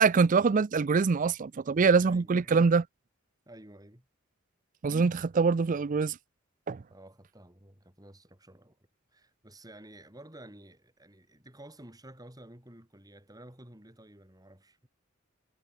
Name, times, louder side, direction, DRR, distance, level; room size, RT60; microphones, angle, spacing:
voice 1, 0.0-2.8 4.8-6.2 6.7-6.8, right 5 dB, 40° right, 0.4 m, -24 dB
voice 2, 2.0-2.5 3.5-4.1 6.9-8.8 9.1-14.9, right 1 dB, 20° right, 6.0 m, -52 dB
head